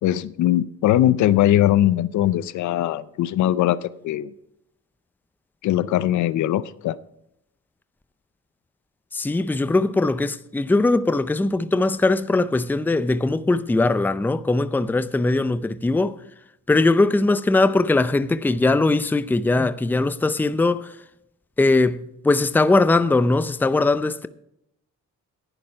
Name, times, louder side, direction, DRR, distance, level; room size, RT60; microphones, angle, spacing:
voice 1, 0.0-4.3 5.6-7.0, left 13 dB, 70° left, 0.6 m, -20 dB
voice 2, 9.1-16.2 16.7-20.9 21.6-24.3, left 2 dB, 5° left, 0.5 m, -20 dB
11.0 x 9.8 x 5.6 m
cardioid pair, 90°, 30 cm